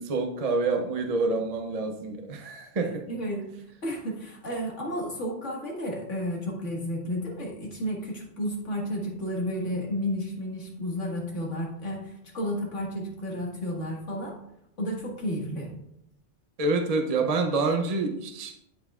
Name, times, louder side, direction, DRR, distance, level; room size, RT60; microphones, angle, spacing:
voice 1, 0.0-3.0 16.6-18.5, right 3 dB, 40° right, 4 dB, 0.7 m, -27 dB
voice 2, 2.8-3.6 3.8-14.4 14.8-15.7, equal, 85° left, -2 dB, 2.2 m, -32 dB
12.5 x 5.5 x 2.4 m, 0.79 s
omnidirectional pair, 1.2 m